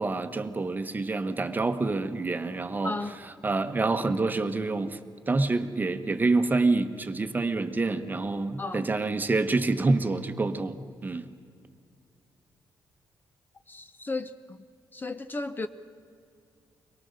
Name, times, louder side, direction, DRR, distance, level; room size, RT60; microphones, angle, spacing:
voice 1, 0.0-2.9 3.4-5.0 5.3-11.3, right 3 dB, 25° right, 1.0 m, -27 dB
voice 2, 2.8-3.2 8.6-8.9 13.7-14.6 14.9-15.7, left 3 dB, 25° left, 0.6 m, -34 dB
24.0 x 18.5 x 6.6 m
cardioid pair, 105°, 8 cm